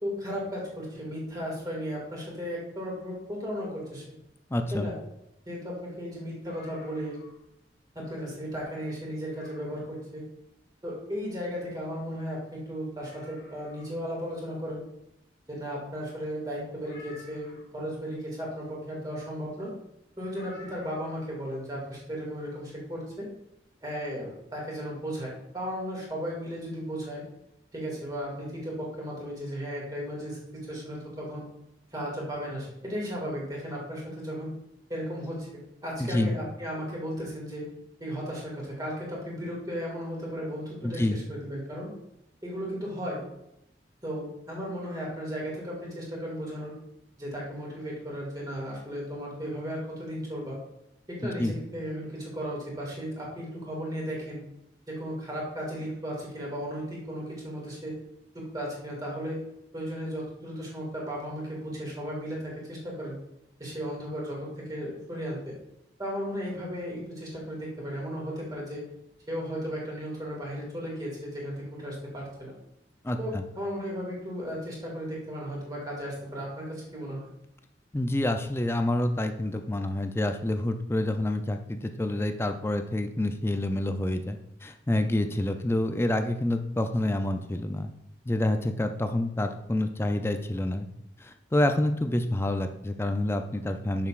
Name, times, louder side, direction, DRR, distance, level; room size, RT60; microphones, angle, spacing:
voice 1, 0.0-4.0 4.7-5.0 5.5-7.2 8.0-10.2 10.8-14.8 15.5-19.7 20.2-23.3 23.8-27.2 27.7-31.5 31.9-34.5 34.9-35.5 35.8-37.7 38.0-41.9 42.4-43.2 44.0-46.7 47.2-50.6 51.1-54.4 54.9-58.0 58.3-59.4 59.7-63.2 63.6-65.5 66.0-68.8 69.3-72.5 73.2-77.3, equal, 20° right, -3 dB, 2.2 m, -35 dB
voice 2, 4.5-4.9 36.0-36.3 40.8-41.2 51.2-51.5 73.0-73.4 77.9-87.9 88.3-90.9 91.2-94.1, left 1 dB, 15° left, 7 dB, 0.4 m, -28 dB
sound 1, 6.4-7.5 7.9-8.0 8.5-8.7 9.3-9.9 11.7-11.8 11.9-12.0 12.5-12.6 13.0-14.0 16.8-17.8 20.3-21.4 22.6-22.7, left 2 dB, 90° left, 2.5 m, -52 dB
6.8 x 6.6 x 2.4 m, 0.84 s
head